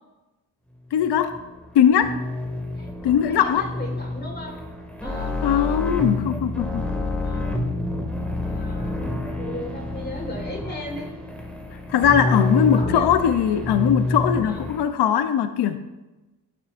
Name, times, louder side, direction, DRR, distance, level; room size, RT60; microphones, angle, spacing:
voice 1, 0.9-1.4 1.7-2.2 3.0-3.6 5.4-6.9 11.9-15.8, left 9 dB, 60° left, 10 dB, 0.7 m, -20 dB
sound 1, 1.0-14.8, left 2 dB, 5° left, 2.1 m, -28 dB
voice 2, 3.3-4.6 5.0-5.3 7.2-7.6 8.4-11.1 12.4-13.1 14.4-14.6, left 1 dB, 20° left, 1 dB, 1.8 m, -37 dB
11.0 x 9.7 x 2.6 m, 1.1 s
supercardioid pair, 65°, 46 cm